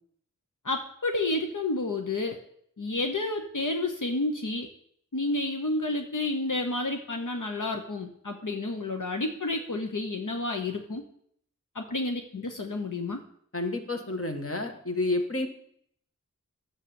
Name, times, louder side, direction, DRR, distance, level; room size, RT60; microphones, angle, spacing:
voice 1, 0.6-2.4 2.8-4.7 5.1-11.0 11.7-13.2, left 2 dB, 70° left, 4 dB, 1.1 m, -30 dB
voice 2, 13.5-15.5, left 2 dB, 45° left, 5 dB, 1.8 m, -30 dB
11.5 x 7.6 x 7.1 m, 0.67 s
wide cardioid pair, 60°, 32 cm